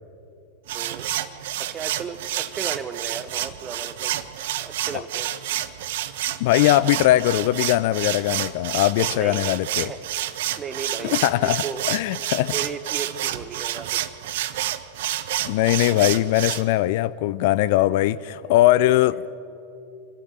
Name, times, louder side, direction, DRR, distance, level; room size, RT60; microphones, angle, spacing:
voice 1, 0.7-1.1 1.4-4.2 4.6-5.3 9.1-10.3 10.6-11.8 12.5-14.0 18.4-18.5, right 6 dB, 20° right, 1.2 m, -35 dB
sound 1, 0.7-16.6, right 13 dB, 55° right, 0.9 m, -29 dB
voice 2, 6.4-9.9 11.1-12.5 15.4-19.2, left 15 dB, 50° left, 0.4 m, -20 dB
26.5 x 13.0 x 9.3 m
figure-of-eight pair, 90°, 0 cm